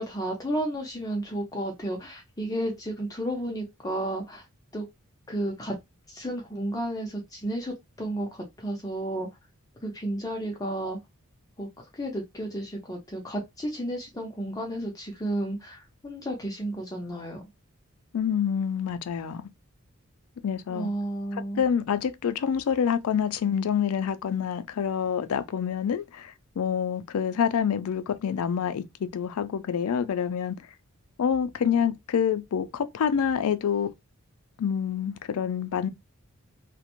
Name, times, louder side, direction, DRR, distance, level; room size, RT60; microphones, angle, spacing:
voice 1, 0.0-4.4 4.7-4.9 5.3-5.8 6.1-9.3 9.8-11.0 11.6-11.7 11.9-17.4 20.7-21.6, right 1 dB, 15° left, 0.5 m, -32 dB
voice 2, 18.1-19.4 20.4-20.9 21.3-30.6 31.2-33.9 34.6-35.9, left 7 dB, 70° left, 0.3 m, -27 dB
2.5 x 2.1 x 2.9 m
head